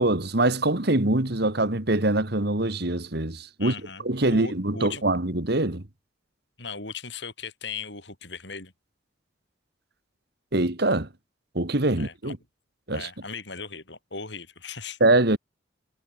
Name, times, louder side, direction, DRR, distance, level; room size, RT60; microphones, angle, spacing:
voice 1, 0.0-3.7 4.0-5.8 10.5-11.1 11.6-12.4 12.9-13.1 15.0-15.4, right 2 dB, 55° right, 2.0 m, -23 dB
voice 2, 3.6-5.0 6.6-8.7 11.9-12.3 12.9-15.0, left 5 dB, 60° left, 6.6 m, -38 dB
head